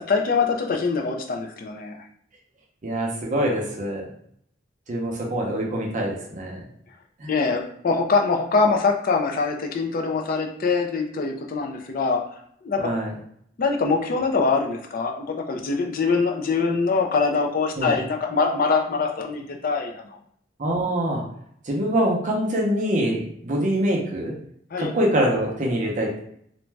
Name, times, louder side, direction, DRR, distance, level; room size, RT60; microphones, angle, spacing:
voice 1, 0.1-2.0 7.3-12.2 12.6-12.9 13.6-20.2 24.7-24.9, left 4 dB, 50° left, 3 dB, 0.4 m, -23 dB
voice 2, 2.8-4.0 4.9-6.6 7.2-7.3 12.8-13.1 17.8-18.0 20.6-21.2 21.6-24.3 24.8-26.2, right 1 dB, 40° right, -1 dB, 0.6 m, -24 dB
2.5 x 2.2 x 3.1 m, 0.68 s
head